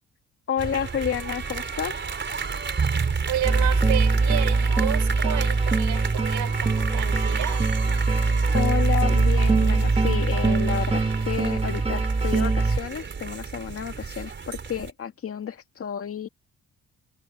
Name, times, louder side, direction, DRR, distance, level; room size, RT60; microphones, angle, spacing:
voice 1, 0.5-1.9 8.1-16.3, left 8 dB, 50° left, 2.1 m, -31 dB
sound 1, 0.6-14.9, right 5 dB, 40° right, 4.3 m, -32 dB
voice 2, 3.3-7.6, right 12 dB, 80° right, 4.5 m, -31 dB
sound 2, 3.4-12.8, right 3 dB, 20° right, 1.4 m, -22 dB
cardioid pair, 90°, 30 cm